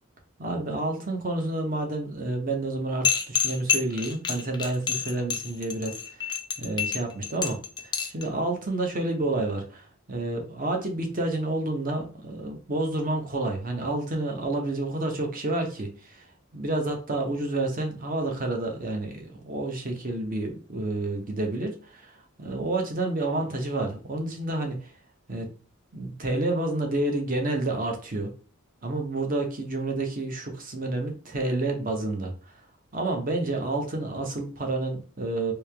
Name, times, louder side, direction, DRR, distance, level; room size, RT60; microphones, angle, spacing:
voice 1, 0.4-6.0 6.2-6.3 6.6-7.6 7.8-16.2 16.5-22.1 22.4-24.9 25.3-25.5 25.9-28.3 28.8-32.3 32.9-35.5, right 2 dB, 40° right, 3 dB, 0.8 m, -29 dB
sound 1, 3.0-8.2, left 8 dB, 20° left, 0.3 m, -27 dB
3.2 x 2.8 x 3.3 m, 0.39 s
head